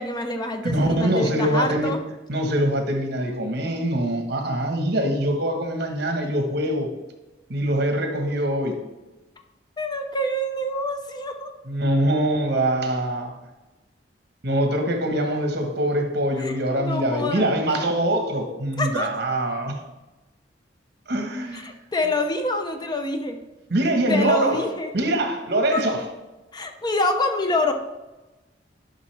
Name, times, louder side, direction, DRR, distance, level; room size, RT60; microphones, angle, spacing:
voice 1, 0.0-2.0 9.8-11.5 16.4-17.8 18.8-19.1 21.5-23.4 24.1-24.9 25.7-25.8 26.5-27.7, left 2 dB, 25° left, 5 dB, 0.7 m, -26 dB
voice 2, 0.7-1.9 2.3-6.9 7.5-8.8 11.6-13.3 14.4-19.7 21.1-21.6 23.7-24.7 24.9-26.0, right 1 dB, 65° right, 4 dB, 1.4 m, -23 dB
11.0 x 5.7 x 3.4 m, 1.1 s
head